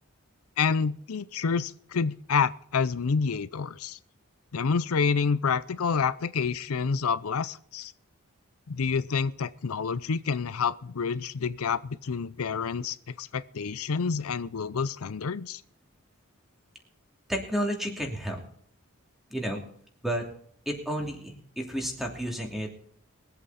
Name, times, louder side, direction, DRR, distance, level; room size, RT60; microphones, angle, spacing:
voice 1, 0.6-4.0 4.5-7.9 8.7-15.6, left 5 dB, 85° left, 0.6 m, -28 dB
voice 2, 17.3-18.4 19.3-19.6 20.0-20.3 20.7-22.7, equal, ahead, 2.8 m, -31 dB
22.0 x 8.2 x 4.1 m
head